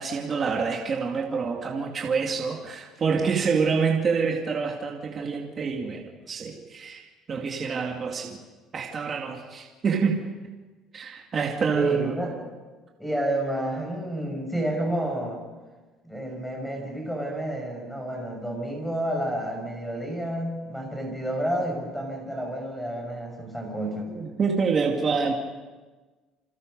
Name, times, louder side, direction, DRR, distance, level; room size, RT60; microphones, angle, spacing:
voice 1, 0.0-8.4 8.7-10.3 10.9-12.2 24.1-25.3, right 5 dB, 30° right, 0 dB, 2.3 m, -27 dB
voice 2, 11.7-12.3 13.0-15.4 16.0-24.1, right 1 dB, ahead, 1 dB, 6.6 m, -30 dB
29.0 x 26.0 x 5.4 m, 1.3 s
cardioid pair, 165°, 0 cm